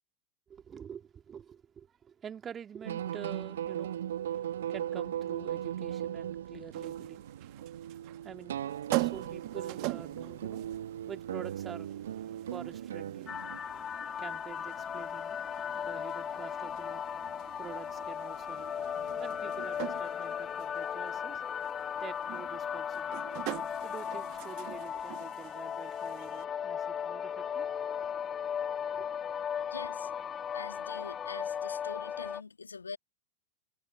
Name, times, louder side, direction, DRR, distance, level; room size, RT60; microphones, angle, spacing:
voice 1, 0.5-4.0 4.3-7.3 8.2-8.6 9.0-10.7 11.1-12.0 12.4-13.3 14.2-15.4 15.7-17.1 17.6-18.7 19.1-21.4 22.0-23.2 23.8-27.7 28.9-29.1, right 8 dB, 25° right, 2.2 m, -47 dB
sound 1, 2.9-13.6, right 10 dB, 65° right, 1.4 m, -38 dB
sound 2, 6.7-26.4, right 28 dB, 45° right, 1.6 m, -43 dB
sound 3, 13.3-32.4, left 8 dB, 25° left, 2.6 m, -37 dB
voice 2, 29.7-30.1 30.5-33.0, left 5 dB, 80° left, 2.2 m, -44 dB
figure-of-eight pair, 85°, 0 cm